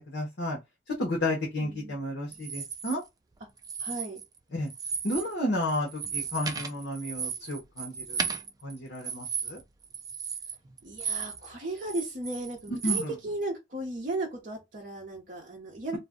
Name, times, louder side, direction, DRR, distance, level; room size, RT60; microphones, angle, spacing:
voice 1, 0.1-0.6 0.9-3.0 4.5-4.7 5.0-8.3 8.6-9.6 12.8-13.1, left 1 dB, 60° left, 0.9 m, -32 dB
voice 2, 1.6-2.0 3.8-4.2 10.8-16.0, right 2 dB, 45° right, 0.7 m, -35 dB
sound 1, 2.3-2.9 3.6-4.4 4.7-5.3 5.6-11.5 11.8-13.1, right 6 dB, 20° right, 0.3 m, -35 dB
2.5 x 2.1 x 3.5 m
head